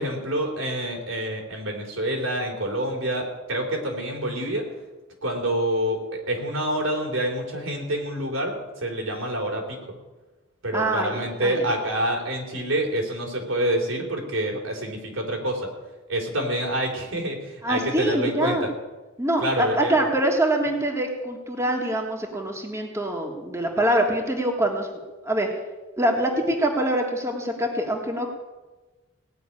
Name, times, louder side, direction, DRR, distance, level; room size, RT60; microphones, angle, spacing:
voice 1, 0.0-4.7 5.2-10.0 10.6-15.7 16.1-18.7 19.4-20.0, right 1 dB, 80° right, 0 dB, 3.4 m, -27 dB
voice 2, 10.7-11.7 17.6-18.6 19.2-24.9 25.2-25.5 26.0-28.3, right 1 dB, 15° right, 1 dB, 1.5 m, -24 dB
17.5 x 5.9 x 9.7 m, 1.2 s
head